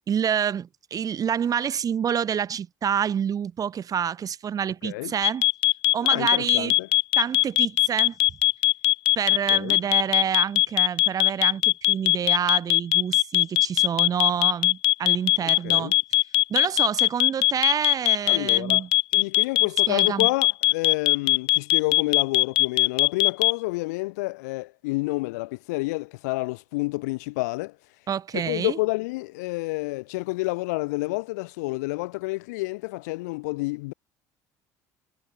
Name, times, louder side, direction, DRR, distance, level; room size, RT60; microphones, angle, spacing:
voice 1, 0.1-5.4 5.9-6.7 7.2-8.1 9.1-15.9 16.5-18.9 19.9-20.3 28.1-28.8, right 8 dB, 45° right, 1.6 m, -28 dB
voice 2, 4.8-5.1 6.1-6.9 9.5-9.8 15.4-16.0 18.3-18.8 19.1-27.8 28.3-33.9, left 23 dB, 90° left, 2.2 m, -29 dB
sound 1, 5.2-23.5, left 21 dB, 70° left, 0.4 m, -19 dB
supercardioid pair, 80°, 9 cm